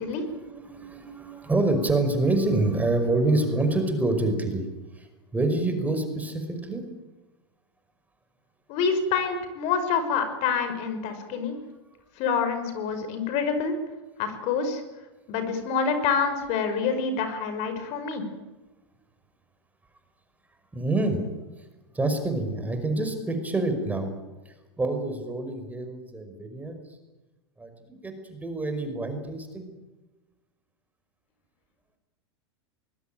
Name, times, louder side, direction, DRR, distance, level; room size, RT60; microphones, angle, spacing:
voice 1, 0.0-4.7 4.9-6.8 20.7-21.2 21.6-21.7 21.9-24.1 24.5-26.8 27.6-29.7, right 2 dB, 10° right, 7 dB, 5.5 m, -27 dB
voice 2, 8.7-11.6 12.2-13.7 14.2-14.8 15.3-18.2, left 6 dB, 50° left, 8 dB, 5.6 m, -27 dB
24.5 x 21.0 x 9.2 m, 1.1 s
hypercardioid pair, 105°, 14 cm